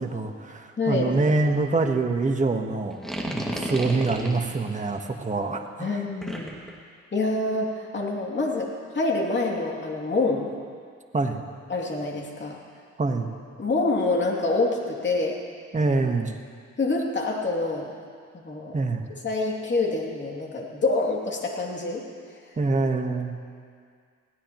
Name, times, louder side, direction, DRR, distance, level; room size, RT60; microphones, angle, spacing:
voice 1, 0.0-5.9 11.1-11.4 13.0-13.3 15.7-16.3 18.7-19.0 22.6-23.3, right 3 dB, 25° right, 4 dB, 1.4 m, -25 dB
voice 2, 0.8-1.1 5.8-6.6 7.1-10.5 11.7-12.6 13.6-15.4 16.8-17.9 18.3-18.8 19.2-22.0, left 3 dB, 35° left, -1 dB, 2.8 m, -26 dB
sound 1, 2.9-4.5 6.2-6.7, equal, ahead, 2.2 m, -31 dB
21.0 x 16.5 x 3.1 m, 2.1 s
cardioid pair, 90°, 30 cm